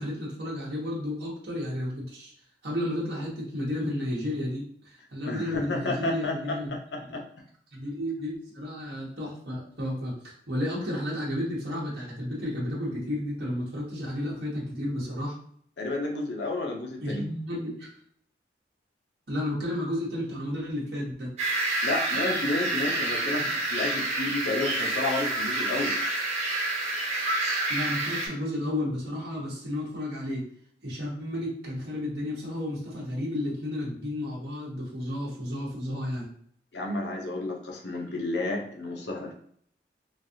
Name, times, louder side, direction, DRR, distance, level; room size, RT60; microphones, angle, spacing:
voice 1, 0.0-2.3 2.6-6.7 7.1-7.2 7.7-15.3 17.0-17.9 19.3-21.3 27.7-30.4 30.8-36.3, left 1 dB, 60° right, -5 dB, 1.0 m, -32 dB
voice 2, 5.2-7.2 15.8-17.3 21.8-26.0 36.7-39.3, left 2 dB, 75° left, 1 dB, 0.7 m, -31 dB
sound 1, 21.4-28.3, right 2 dB, 35° right, 0.7 m, -28 dB
3.3 x 2.3 x 2.7 m, 0.62 s
head